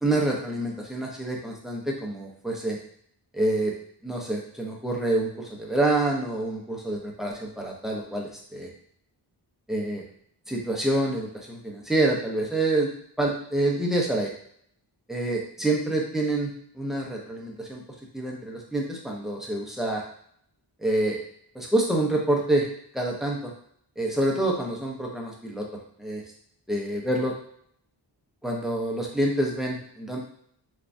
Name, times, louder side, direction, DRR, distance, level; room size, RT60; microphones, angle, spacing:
voice 1, 0.0-2.8 3.3-3.7 4.0-8.7 9.7-10.0 10.5-12.9 13.2-14.3 15.1-17.8 18.1-20.0 20.8-21.2 21.5-22.7 22.9-23.5 24.0-25.6 26.0-26.2 26.7-27.3 28.4-30.2, right 1 dB, ahead, -2 dB, 0.7 m, -27 dB
3.2 x 2.3 x 2.6 m, 0.65 s
wide cardioid pair, 65°, 46 cm